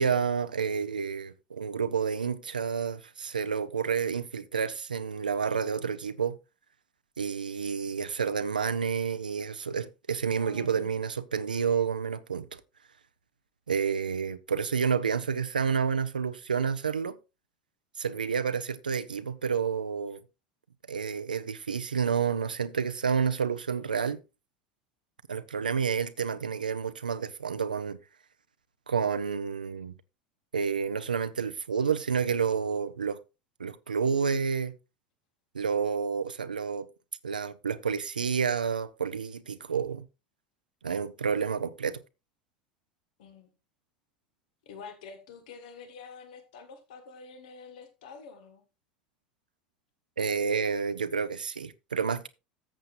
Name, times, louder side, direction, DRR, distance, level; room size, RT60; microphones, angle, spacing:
voice 1, 0.0-6.4 7.2-12.6 13.7-17.2 18.0-20.2 20.9-24.2 25.3-28.0 28.9-29.9 30.5-33.2 33.6-34.7 35.5-36.9 37.2-40.0 40.8-42.0 50.2-52.3, right 6 dB, 85° right, 0.6 m, -29 dB
voice 2, 10.3-10.9 43.2-43.5 44.6-48.6, left 5 dB, 65° left, 1.5 m, -47 dB
13.5 x 7.5 x 2.5 m
figure-of-eight pair, 75°, 5 cm